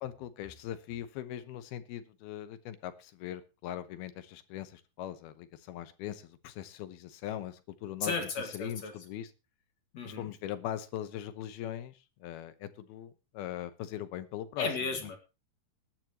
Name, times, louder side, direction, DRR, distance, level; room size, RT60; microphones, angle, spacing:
voice 1, 0.0-8.2 8.5-9.3 10.1-11.9 12.2-14.7, left 11 dB, 75° left, 11 dB, 2.9 m, -40 dB
voice 2, 8.0-8.9 9.9-10.2 14.6-15.2, left 4 dB, 50° left, 4 dB, 2.7 m, -34 dB
20.0 x 10.5 x 3.0 m, 0.29 s
omnidirectional pair, 4.6 m